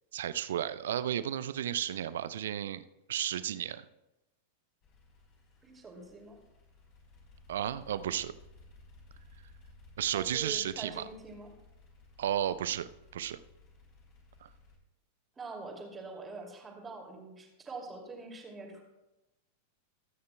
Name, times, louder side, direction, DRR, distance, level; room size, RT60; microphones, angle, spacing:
voice 1, 0.1-2.8 3.1-3.9 7.5-8.3 10.0-11.1 12.2-13.4 14.4-14.5, right 10 dB, 60° right, 15 dB, 0.4 m, -33 dB
sound 1, 4.8-14.8, left 2 dB, 35° left, 3.8 m, -58 dB
voice 2, 5.6-6.4 10.1-11.5 15.4-18.8, right 3 dB, 15° right, 0 dB, 2.5 m, -44 dB
22.5 x 9.4 x 2.3 m, 0.97 s
figure-of-eight pair, 90°, 0 cm